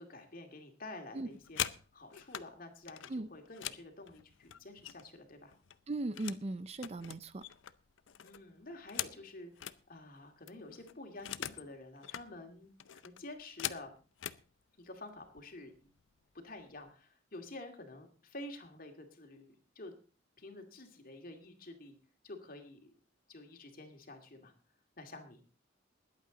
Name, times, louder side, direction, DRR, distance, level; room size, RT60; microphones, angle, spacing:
voice 1, 0.0-1.6 1.9-5.5 8.2-12.7 13.0-13.9 14.8-15.9 16.4-19.9 20.4-21.9 22.2-22.9 23.3-24.5 25.0-25.4, left 2 dB, 50° left, 4 dB, 2.3 m, -49 dB
sound 1, 1.2-2.5 2.9-5.2 5.5-6.5 6.8-9.8 10.2-10.3 10.5-11.7 12.0-12.3 12.8-14.4 15.2-15.4 15.8-16.1 16.4-16.9, left 11 dB, 80° left, 0.6 m, -42 dB
voice 2, 5.9-7.4, right 2 dB, 35° right, 15 dB, 0.5 m, -38 dB
21.0 x 8.4 x 3.9 m, 0.37 s
head